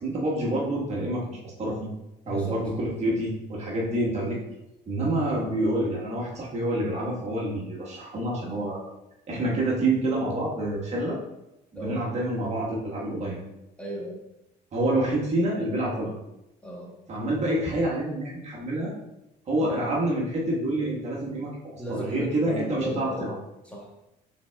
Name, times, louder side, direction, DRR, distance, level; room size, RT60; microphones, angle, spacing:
voice 1, 0.0-1.9 2.3-4.4 4.9-8.8 9.3-11.2 11.7-13.4 14.7-16.1 17.1-18.9 19.5-23.3, right 1 dB, 40° right, -4 dB, 1.3 m, -27 dB
voice 2, 2.2-2.6 11.7-12.0 13.8-14.2 16.6-16.9 19.6-19.8 21.8-23.3 23.6-24.1, equal, 5° left, -3 dB, 1.2 m, -36 dB
5.7 x 3.7 x 2.2 m, 0.91 s
cardioid pair, 110°, 17 cm